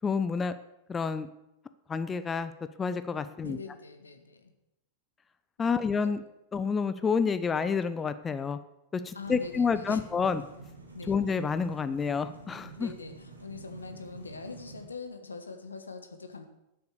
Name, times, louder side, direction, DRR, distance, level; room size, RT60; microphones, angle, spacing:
voice 1, 0.0-0.5 0.9-1.3 1.9-2.5 2.8-3.6 5.6-6.2 6.5-8.6 8.9-10.4 11.1-12.9, left 5 dB, 20° left, 12 dB, 0.5 m, -29 dB
voice 2, 3.3-4.5 5.6-5.7 6.0-6.1 9.1-10.0 10.9-11.1 12.8-16.4, left 4 dB, 75° left, 6 dB, 1.4 m, -43 dB
sound 1, 9.2-14.9, right 3 dB, 85° right, 2.1 m, -48 dB
9.8 x 7.9 x 6.6 m, 0.89 s
figure-of-eight pair, 90°, 0 cm